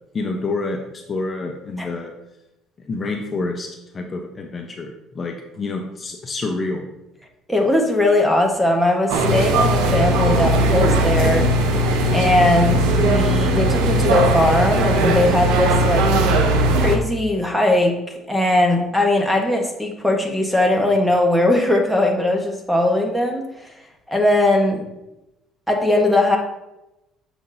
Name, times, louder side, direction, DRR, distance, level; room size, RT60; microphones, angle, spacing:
voice 1, 0.1-0.8 1.1-2.1 2.9-3.7 3.9-6.9, left 3 dB, 25° left, 2 dB, 0.7 m, -27 dB
voice 2, 7.5-11.5 12.1-16.1 16.8-18.0 18.3-23.4 24.1-24.8 25.7-26.4, left 1 dB, 5° right, 2 dB, 1.0 m, -19 dB
sound 1, 9.1-17.0, right 1 dB, 90° right, 0.8 m, -18 dB
Bowed string instrument, 9.5-14.4, left 2 dB, 60° left, 1.3 m, -33 dB
6.8 x 5.8 x 2.6 m, 0.92 s
cardioid pair, 130°, 0 cm